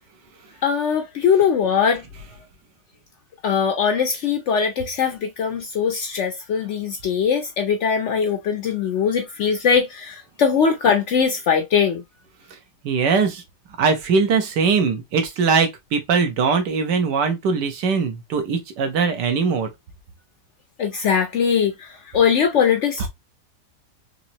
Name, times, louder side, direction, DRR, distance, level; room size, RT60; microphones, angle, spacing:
voice 1, 0.6-2.0 3.4-12.0 20.8-23.1, left 7 dB, 80° left, 0.6 m, -21 dB
voice 2, 12.8-13.4 13.8-19.7, right 5 dB, 85° right, 1.6 m, -21 dB
4.0 x 3.1 x 2.7 m
omnidirectional pair, 1.8 m